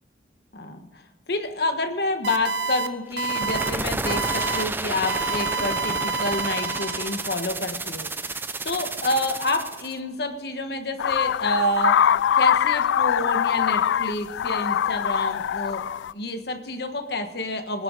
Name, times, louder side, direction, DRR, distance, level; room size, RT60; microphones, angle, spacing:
voice 1, 0.5-1.0 1.3-8.1 8.6-15.8 16.1-17.8, left 2 dB, 60° left, 7 dB, 1.4 m, -28 dB
sound 1, 2.2-2.9 3.2-3.7 4.1-4.6 5.1-7.4, right 4 dB, 75° right, 1.0 m, -28 dB
sound 2, 3.1-9.9, right 2 dB, 10° right, 0.5 m, -31 dB
sound 3, 11.0-16.1, left 9 dB, 85° left, 0.3 m, -23 dB
21.5 x 10.0 x 4.1 m, 1.4 s
head